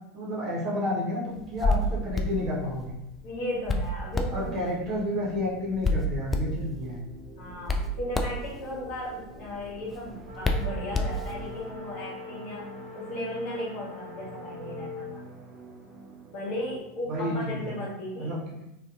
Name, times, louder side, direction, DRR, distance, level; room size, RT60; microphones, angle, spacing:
voice 1, 0.1-3.0 4.3-7.0 17.1-17.8 18.2-18.7, left 1 dB, 45° right, -4 dB, 0.9 m, -31 dB
Hands, 1.4-11.6, left 1 dB, 20° left, 0.3 m, -31 dB
voice 2, 3.2-4.5 7.4-12.6 12.9-15.3 16.3-18.3, left 1 dB, 60° left, -5 dB, 1.2 m, -36 dB
sound 1, 4.1-16.8, right 3 dB, 25° right, 0.5 m, -47 dB
sound 2, 10.2-15.2, left 6 dB, 85° right, 0.4 m, -43 dB
2.7 x 2.4 x 2.4 m, 0.89 s
hypercardioid pair, 85°, 0 cm